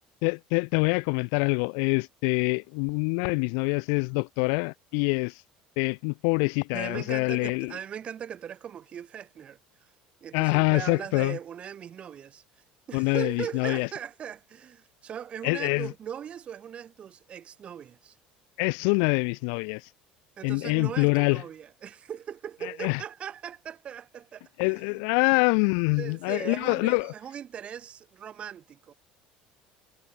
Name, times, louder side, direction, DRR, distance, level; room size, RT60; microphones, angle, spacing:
voice 1, 0.2-5.4 5.8-7.7 10.3-11.4 12.9-13.9 15.4-15.9 18.6-19.8 20.4-21.4 22.8-23.0 24.6-27.1, left 40 dB or more, 80° left, 0.5 m, -25 dB
voice 2, 6.7-9.9 10.2-18.2 20.4-25.0 26.0-28.9, right 9 dB, 35° right, 2.3 m, -39 dB
cardioid pair, 130°, 3 cm